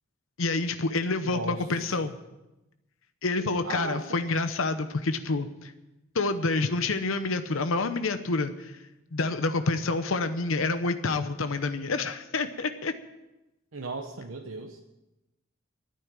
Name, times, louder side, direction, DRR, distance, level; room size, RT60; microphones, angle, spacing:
voice 1, 0.4-2.2 3.2-5.7 6.1-8.8 9.1-12.9, left 3 dB, 85° left, 9 dB, 0.8 m, -28 dB
voice 2, 1.2-1.9 3.6-4.2 13.7-14.8, right 3 dB, 80° right, 3 dB, 1.1 m, -36 dB
11.5 x 9.6 x 8.9 m, 0.97 s
head